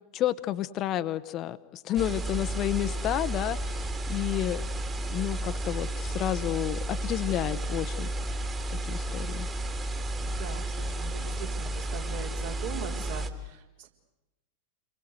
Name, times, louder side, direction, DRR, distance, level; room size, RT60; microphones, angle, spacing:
voice 1, 0.1-4.6 5.0-8.1 8.9-9.5, left 13 dB, 35° left, 12 dB, 1.0 m, -31 dB
sound 1, 2.0-13.3, right 1 dB, 20° right, 2.4 m, -32 dB
voice 2, 10.2-13.9, right 8 dB, 55° right, 2 dB, 4.2 m, -41 dB
29.5 x 23.0 x 8.2 m, 1.0 s
figure-of-eight pair, 90°, 0 cm